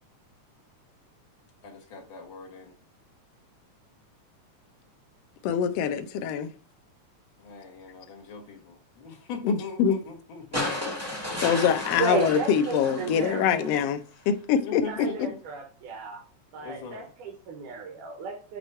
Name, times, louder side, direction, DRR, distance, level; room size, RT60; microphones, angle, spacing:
voice 1, 1.6-2.8 7.4-11.6 12.9-13.7 14.6-15.4 16.5-17.1, left 4 dB, 50° left, 1.8 m, -41 dB
voice 2, 5.4-6.5 9.4-10.0 11.4-14.0 14.3-14.8 15.2-15.3, left 8 dB, 80° left, 1.4 m, -24 dB
sound 1, 10.5-13.8 15.2-15.3, left 1 dB, 10° right, 0.9 m, -33 dB
voice 3, 12.0-13.7 14.9-16.2 16.5-18.6, right 4 dB, 90° right, 2.8 m, -33 dB
7.9 x 3.0 x 4.4 m
omnidirectional pair, 3.6 m